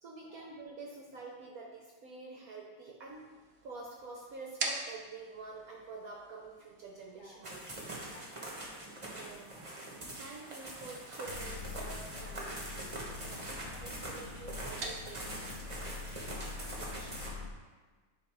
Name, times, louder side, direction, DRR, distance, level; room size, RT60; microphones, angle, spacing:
voice 1, 0.0-3.3 3.6-7.9 9.1-9.5 10.1-12.6 13.8-15.3 16.8-17.3, right 3 dB, 65° right, -1 dB, 1.0 m, -47 dB
sound 1, 3.1-17.4, right 3 dB, 80° right, 0.5 m, -48 dB
voice 2, 7.1-9.6 11.2-11.9 13.2-14.3 15.0-15.1 15.8-16.1, left 2 dB, 50° left, -4 dB, 1.1 m, -59 dB
sound 2, 7.4-17.3, right 1 dB, 20° right, 0.9 m, -43 dB
sound 3, 11.3-17.5, left 5 dB, 75° left, 1.3 m, -45 dB
10.0 x 3.8 x 3.0 m, 1.3 s
omnidirectional pair, 2.1 m